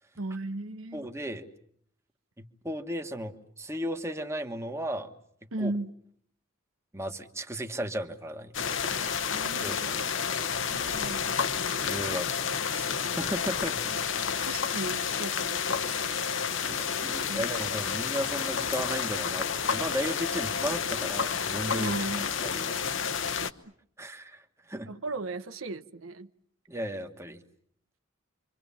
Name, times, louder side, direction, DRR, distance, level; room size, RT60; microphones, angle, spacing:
voice 1, 0.2-1.1 5.5-5.9 9.3-9.9 10.7-11.3 14.4-16.2 17.2-17.5 21.7-22.3 23.4-23.5 24.9-26.3, right 2 dB, 85° right, 1.0 m, -36 dB
voice 2, 0.9-1.5 2.4-5.1 5.6-5.7 6.9-8.5 9.6-10.4 11.8-12.8 13.1-13.8 16.6-22.1 22.4-22.8 24.0-24.4 24.7-24.9 26.7-27.4, equal, 15° right, 1.5 m, -35 dB
sound 1, 8.5-23.5, left 6 dB, 65° left, 1.1 m, -30 dB
28.5 x 25.0 x 7.2 m
head